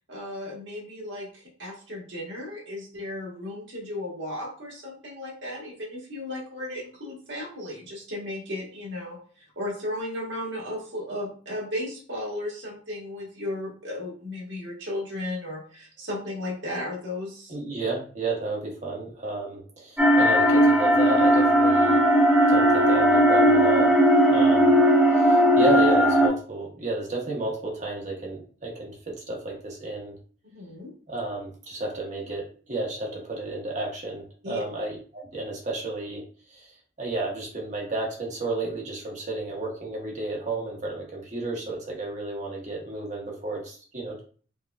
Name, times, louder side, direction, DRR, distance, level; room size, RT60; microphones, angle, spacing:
voice 1, 0.1-9.2 9.5-17.5 24.3-24.4 25.2-25.4 30.5-30.9 34.4-34.6, left 1 dB, 80° right, -3 dB, 1.4 m, -35 dB
voice 2, 17.5-22.0 22.5-23.9 24.3-24.7 25.1-30.1 31.1-36.2 36.5-36.7 37.0-44.2, right 2 dB, 40° right, -1 dB, 1.0 m, -32 dB
sound 1, 20.0-26.3, equal, 10° right, 0.6 m, -18 dB
4.7 x 2.3 x 2.3 m, 0.41 s
head